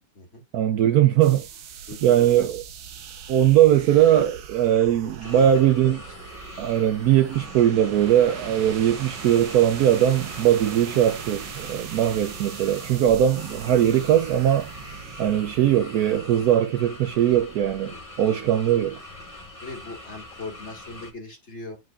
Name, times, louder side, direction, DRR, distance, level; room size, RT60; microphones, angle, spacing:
voice 1, 0.5-1.5 2.0-2.6 3.3-6.0 6.6-14.7 15.2-19.0, right 11 dB, 70° right, 0.9 m, -20 dB
sound 1, 1.2-16.5, right 8 dB, 90° right, 1.6 m, -40 dB
voice 2, 1.9-2.5 5.0-5.5 5.8-5.9 15.2-15.5 17.9-18.0 19.6-21.8, left 2 dB, 40° left, 2.2 m, -40 dB
sound 2, 5.2-21.1, left 2 dB, 20° left, 1.7 m, -43 dB
9.2 x 5.0 x 2.4 m
omnidirectional pair, 1.9 m